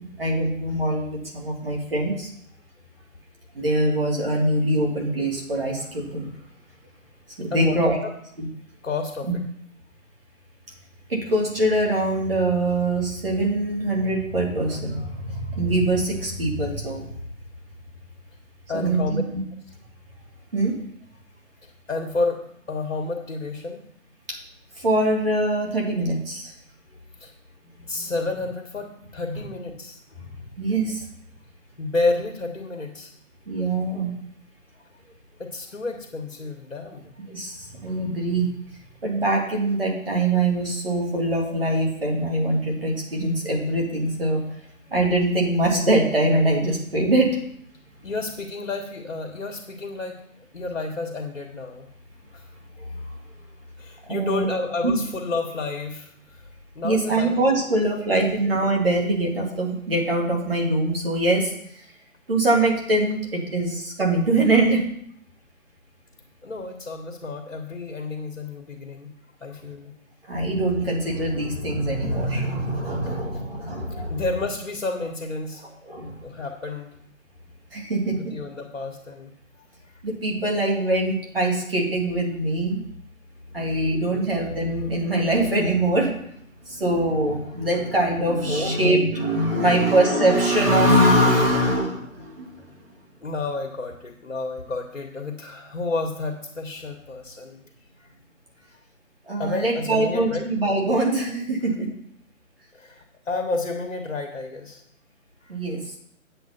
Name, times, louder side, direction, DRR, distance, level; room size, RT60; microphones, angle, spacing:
voice 1, 0.2-2.3 3.5-6.3 7.4-8.0 8.4-8.5 11.1-17.1 18.7-19.4 20.5-20.7 24.3-24.4 24.8-26.5 28.0-28.1 30.2-30.3 30.6-31.0 33.5-34.1 37.3-38.5 39.0-44.4 44.9-47.3 54.1-55.0 56.8-61.5 62.3-64.8 70.3-74.2 75.9-76.1 77.7-78.3 80.0-82.8 83.5-86.1 86.7-92.5 99.3-101.9 105.5-105.8, right 1 dB, 45° right, -1 dB, 2.8 m, -23 dB
voice 2, 7.5-8.1 8.8-9.3 18.7-19.2 21.9-22.4 22.7-23.8 27.2-27.3 27.9-30.0 31.8-33.1 35.4-37.1 48.0-50.2 50.5-51.9 52.3-52.4 53.8-56.4 56.7-57.3 57.9-58.0 58.3-58.4 66.4-69.1 69.4-69.9 74.1-75.7 76.2-76.9 78.1-79.3 79.6-79.7 84.1-84.2 88.5-88.7 89.6-90.0 93.2-97.6 98.0-98.1 99.4-100.4 102.7-104.8 105.4-105.5, left 3 dB, 60° left, 2 dB, 1.7 m, -30 dB
8.9 x 7.9 x 4.4 m, 0.69 s
hypercardioid pair, 180°, 41 cm